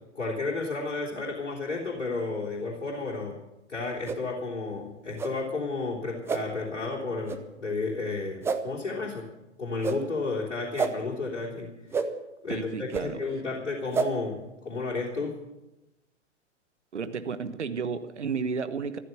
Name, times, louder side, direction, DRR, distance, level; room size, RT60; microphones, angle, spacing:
voice 1, 0.1-3.4 3.7-9.2 9.6-12.0 12.4-15.3, left 3 dB, 70° left, -4 dB, 3.7 m, -32 dB
sound 1, 4.0-4.2 5.2-5.3 6.3-6.4 7.3-7.4 8.4-8.6 9.8-10.0 10.8-10.9 11.9-12.1 12.9-13.0 13.9-14.1, right 5 dB, 5° right, 0.6 m, -28 dB
voice 2, 12.5-13.2 16.9-19.0, right 5 dB, 70° right, 12 dB, 1.3 m, -32 dB
14.5 x 14.0 x 6.9 m, 0.98 s
figure-of-eight pair, 110°, 36 cm